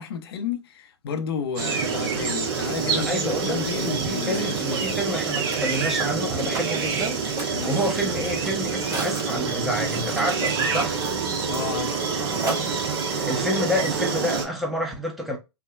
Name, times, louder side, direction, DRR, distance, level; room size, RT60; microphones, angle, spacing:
voice 1, 0.0-4.9 7.5-8.1 11.5-12.0, left 6 dB, 55° left, 0.6 m, -32 dB
sound 1, 1.6-14.5, right 5 dB, 50° right, 0.8 m, -27 dB
voice 2, 2.9-11.0 13.0-15.4, equal, ahead, 0.7 m, -29 dB
Mechanisms, 3.4-13.2, right 2 dB, 25° right, 1.0 m, -38 dB
3.4 x 2.1 x 2.3 m
figure-of-eight pair, 110°, 15 cm